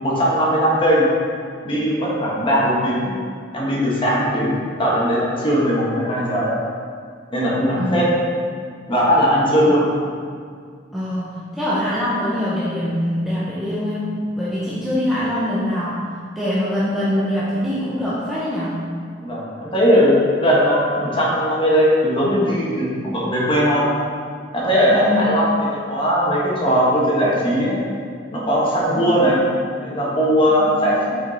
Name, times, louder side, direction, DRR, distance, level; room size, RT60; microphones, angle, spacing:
voice 1, 0.0-1.1 1.6-3.1 3.5-6.5 7.3-8.1 8.9-9.8 19.2-23.8 24.5-27.8 28.3-29.4 29.8-31.2, equal, 30° left, -6 dB, 1.4 m, -19 dB
voice 2, 7.8-8.1 9.7-9.8 10.9-14.1 14.4-16.0 16.3-18.9 24.9-25.3 28.9-29.2 30.6-30.8, left 1 dB, ahead, -10 dB, 0.8 m, -23 dB
6.4 x 5.0 x 4.1 m, 2.1 s
head